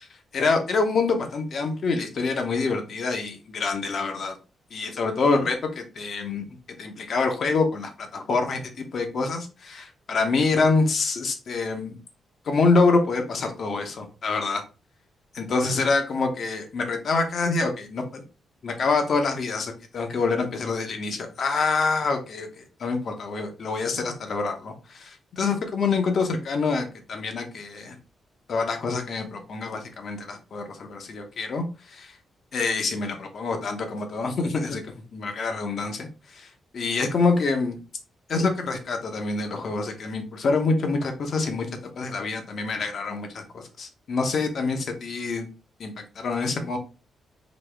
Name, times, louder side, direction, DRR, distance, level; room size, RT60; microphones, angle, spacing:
voice 1, 0.0-4.4 4.7-12.0 12.4-14.6 15.3-18.2 18.6-28.0 28.5-32.2 32.5-37.8 38.3-45.5 45.8-46.8, left 4 dB, 55° left, 5 dB, 0.9 m, -26 dB
4.0 x 2.8 x 3.4 m, 0.33 s
cardioid pair, 120°, 0 cm